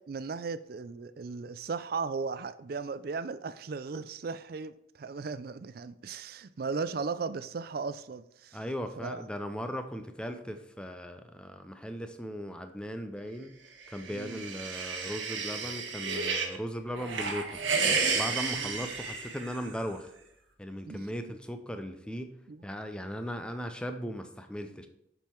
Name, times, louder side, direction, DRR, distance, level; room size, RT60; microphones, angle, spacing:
voice 1, 0.1-8.6 9.0-9.2 14.1-14.4 18.6-18.9 20.9-21.3 22.5-22.6, right 4 dB, 50° right, 14 dB, 0.4 m, -37 dB
voice 2, 8.5-13.5 13.9-17.7 18.1-20.1 20.6-22.3 22.6-24.9, equal, 5° left, 7 dB, 0.5 m, -38 dB
sound 1, 13.9-16.6 17.0-19.8, right 4 dB, 80° right, 1.2 m, -32 dB
7.3 x 5.5 x 4.5 m, 0.78 s
head